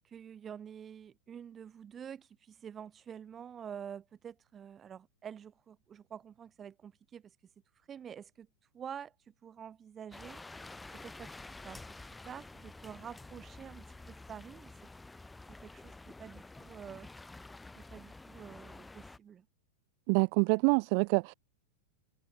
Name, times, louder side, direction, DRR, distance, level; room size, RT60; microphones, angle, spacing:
voice 1, 0.0-7.3 7.9-8.5 8.7-10.4 11.0-11.4 11.6-11.8 12.2-14.7 15.6-17.1 17.8-19.5, right 8 dB, 25° right, 4.6 m, -48 dB
sound 1, 10.1-19.2, left 2 dB, 10° left, 4.5 m, -50 dB
voice 2, 20.1-21.3, right 40 dB or more, 45° right, 0.4 m, -26 dB
figure-of-eight pair, 90°, 0 cm